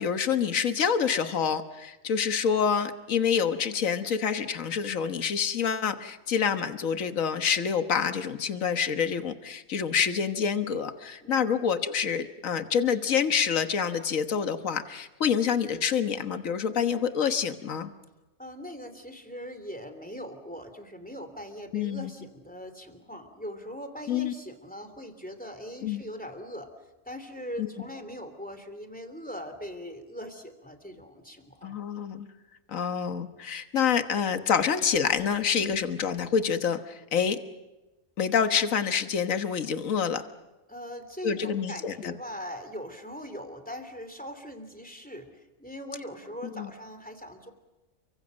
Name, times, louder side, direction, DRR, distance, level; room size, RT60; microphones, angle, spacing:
voice 1, 0.0-17.9 21.7-22.1 24.1-24.3 25.8-26.0 27.6-27.7 31.6-32.3 32.7-37.4 38.2-40.2 41.2-42.1 46.5-46.7, left 7 dB, 70° left, 8 dB, 1.7 m, -27 dB
voice 2, 18.4-26.7 27.1-31.8 40.7-45.3 45.6-47.5, equal, 5° left, 8 dB, 3.0 m, -41 dB
30.0 x 25.0 x 6.4 m, 1.1 s
omnidirectional pair, 1.4 m